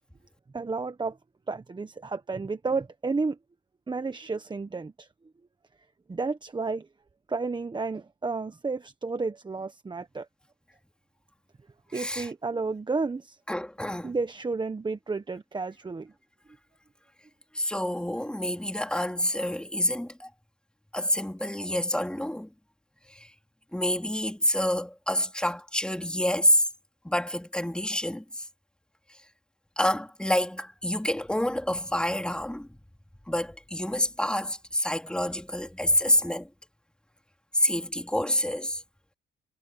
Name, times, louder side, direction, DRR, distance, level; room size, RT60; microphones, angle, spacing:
voice 1, 0.5-1.2 1.5-3.4 3.9-5.1 6.1-6.9 7.3-10.3 11.9-13.4 14.0-16.1, right 4 dB, 25° right, 1.3 m, -31 dB
voice 2, 11.9-12.3 13.5-14.1 17.5-20.3 20.9-22.5 23.1-23.3 23.7-26.6 27.0-28.4 29.8-32.7 33.3-36.5 37.5-38.8, left 1 dB, 5° left, 3.4 m, -27 dB
cardioid pair, 90°, 20 cm